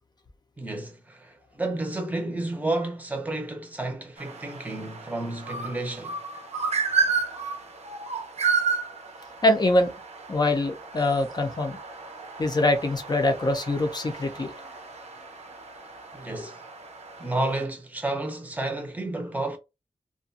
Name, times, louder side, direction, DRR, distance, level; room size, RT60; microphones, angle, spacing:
voice 1, 0.6-6.2 16.1-16.6 17.2-19.6, right 2 dB, 15° right, 0.7 m, -31 dB
sound 1, 4.2-17.6, right 5 dB, 70° right, 0.6 m, -32 dB
voice 2, 9.4-9.9 10.3-11.8 12.4-14.5, left 1 dB, 35° left, 0.6 m, -24 dB
2.5 x 2.2 x 2.6 m
wide cardioid pair, 110°, 12 cm